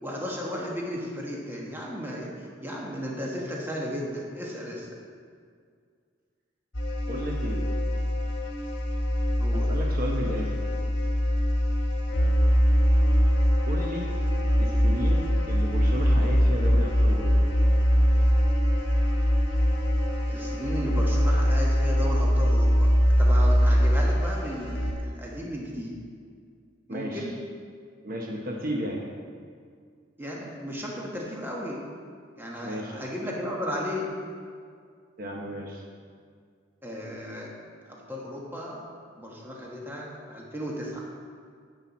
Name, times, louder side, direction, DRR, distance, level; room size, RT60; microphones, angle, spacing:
voice 1, 0.0-4.9 9.4-9.7 20.3-25.9 26.9-27.3 30.2-31.8 32.4-34.1 36.8-37.5 37.9-38.8 39.2-41.1, equal, 10° right, -3 dB, 1.3 m, -34 dB
sound 1, 6.7-24.9, equal, 60° left, 1.8 m, -23 dB
voice 2, 7.1-7.7 9.5-10.6 13.7-14.1 14.6-17.4 26.9-27.3 28.0-29.0 32.6-33.0 35.2-35.8, equal, 45° right, 0 dB, 0.9 m, -33 dB
10.0 x 7.6 x 4.2 m, 2.1 s
head